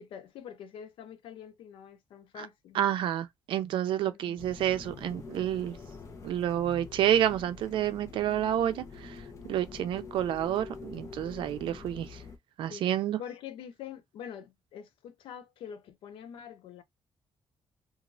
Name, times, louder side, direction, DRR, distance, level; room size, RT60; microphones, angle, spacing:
voice 1, 0.0-2.8 4.0-4.4 9.7-9.8 12.7-12.9 13.2-16.8, left 8 dB, 80° left, 0.6 m, -45 dB
voice 2, 2.7-5.7 6.2-12.2 12.6-13.2, right 11 dB, 75° right, 0.4 m, -29 dB
sound 1, 4.4-12.4, left 4 dB, 35° left, 0.7 m, -46 dB
3.0 x 2.5 x 2.5 m
cardioid pair, 140°, 9 cm